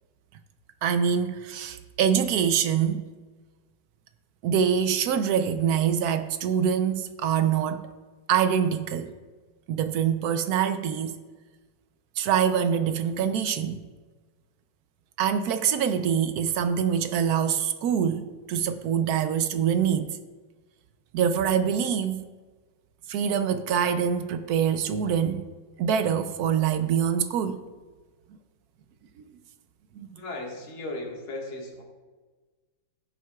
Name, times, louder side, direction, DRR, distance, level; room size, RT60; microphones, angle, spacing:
voice 1, 0.8-3.1 4.4-7.8 8.3-9.1 9.7-11.2 12.2-13.8 15.2-20.2 21.1-22.2 23.1-25.4 25.8-27.6 29.9-30.1, right 8 dB, 75° right, 0.8 m, -25 dB
voice 2, 30.1-31.8, left 2 dB, 85° left, 2.5 m, -36 dB
16.0 x 7.5 x 2.3 m
omnidirectional pair, 2.1 m